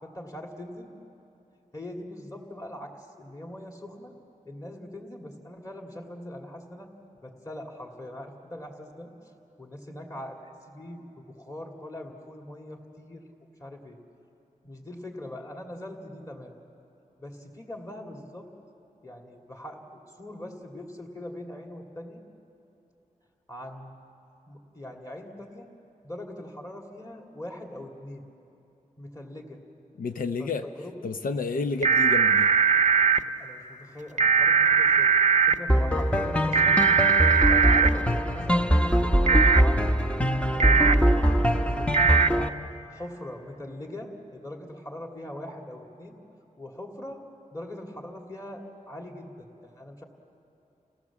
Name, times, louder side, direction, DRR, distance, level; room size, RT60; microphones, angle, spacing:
voice 1, 0.0-0.9 1.7-4.1 4.5-6.9 7.2-9.1 9.6-13.2 13.6-14.0 14.6-16.5 17.2-18.5 19.0-22.2 23.5-23.9 24.5-25.7 26.0-28.2 29.0-29.6 30.4-31.1 31.5-31.6 33.2-35.1 35.4-37.1 37.5-39.8 40.5-42.5 42.9-46.2 46.6-47.2 47.5-50.0, left 1 dB, 25° left, 1 dB, 2.6 m, -41 dB
voice 2, 30.0-30.7 31.0-32.5, left 4 dB, 85° left, 7 dB, 0.7 m, -30 dB
sound 1, 31.8-33.2 34.2-35.5 36.5-37.9 39.3-39.6 40.6-40.9 41.9-42.3, right 6 dB, 60° right, 0.6 m, -20 dB
sound 2, 35.7-42.5, equal, 10° left, 0.9 m, -23 dB
29.5 x 17.0 x 7.3 m, 2.9 s
wide cardioid pair, 95°, 14 cm